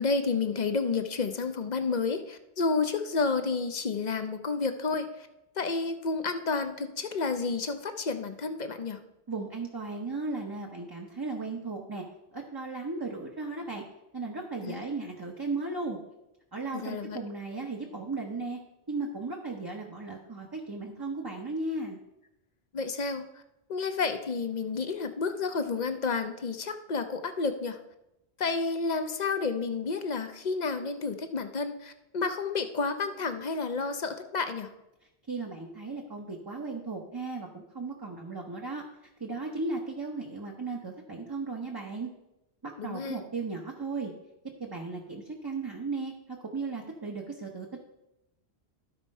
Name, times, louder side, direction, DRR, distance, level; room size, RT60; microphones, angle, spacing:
voice 1, 0.0-5.3 5.6-9.0 14.6-14.8 16.7-17.2 22.7-23.4 23.7-27.8 28.4-34.7 42.8-43.2, left 4 dB, 45° left, 8 dB, 0.7 m, -30 dB
voice 2, 9.3-12.0 12.3-13.8 14.1-16.0 16.5-18.6 18.9-22.0 35.3-38.8 39.2-42.1 42.6-44.1 44.6-46.1 46.5-47.8, right 3 dB, 25° right, 0 dB, 0.8 m, -36 dB
13.0 x 4.3 x 5.4 m, 0.90 s
omnidirectional pair, 1.1 m